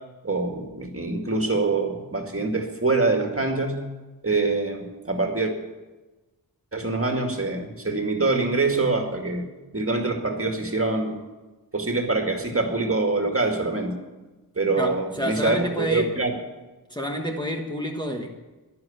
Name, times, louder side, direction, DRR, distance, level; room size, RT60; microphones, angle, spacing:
voice 1, 0.2-3.9 4.2-5.5 6.7-9.5 9.7-11.2 11.7-14.0 14.6-16.4, right 3 dB, 35° right, 2.0 m, -25 dB
voice 2, 14.8-16.1 16.9-18.3, equal, 10° left, 1.4 m, -28 dB
11.0 x 11.0 x 8.7 m
wide cardioid pair, 75°, 39 cm